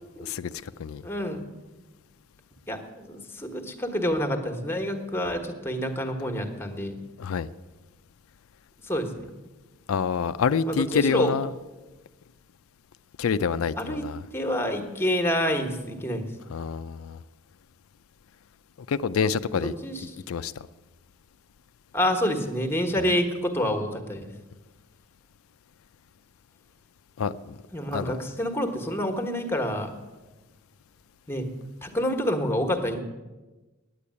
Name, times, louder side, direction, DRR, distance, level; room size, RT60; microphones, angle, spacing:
voice 1, 0.2-1.0 7.2-7.5 9.9-11.5 13.2-14.2 16.5-17.2 18.9-20.5 27.2-27.6 27.9-28.2, left 6 dB, 80° left, 0.4 m, -27 dB
voice 2, 1.0-1.4 2.7-6.9 8.9-9.2 10.7-11.3 13.8-14.0 14.3-16.2 19.5-20.0 21.9-24.3 27.7-29.9 31.3-31.5 31.8-33.0, equal, 10° left, 1.3 m, -28 dB
10.0 x 8.6 x 9.6 m
head